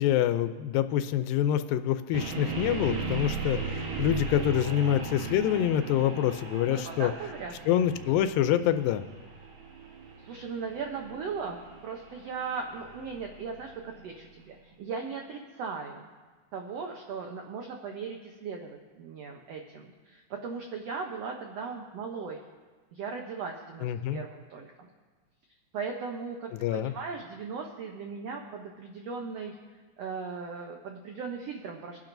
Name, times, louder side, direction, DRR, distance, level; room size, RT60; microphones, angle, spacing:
voice 1, 0.0-7.1 7.7-9.0 23.8-24.2 26.5-26.9, left 11 dB, 90° left, 11 dB, 2.3 m, -26 dB
sound 1, 2.1-14.1, right 5 dB, 65° right, 2.6 m, -37 dB
voice 2, 6.6-7.5 10.2-16.1 16.5-22.4 22.9-24.7 25.7-29.5 30.0-32.0, right 5 dB, 85° right, 2 dB, 1.4 m, -38 dB
24.5 x 10.5 x 2.6 m, 1.4 s
omnidirectional pair, 4.0 m